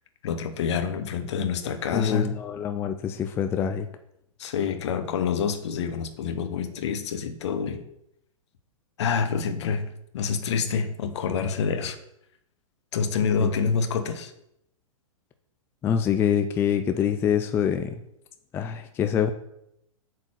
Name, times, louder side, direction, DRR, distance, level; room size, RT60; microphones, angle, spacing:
voice 1, 0.2-2.4 4.4-7.8 9.0-9.8 10.1-12.0 12.9-14.3, left 6 dB, 50° left, 8 dB, 1.0 m, -27 dB
voice 2, 1.9-3.9 13.4-13.5 15.8-18.0 18.5-19.3, left 8 dB, 15° left, 7 dB, 0.4 m, -25 dB
8.7 x 4.2 x 6.3 m, 0.79 s
figure-of-eight pair, 110°, 18 cm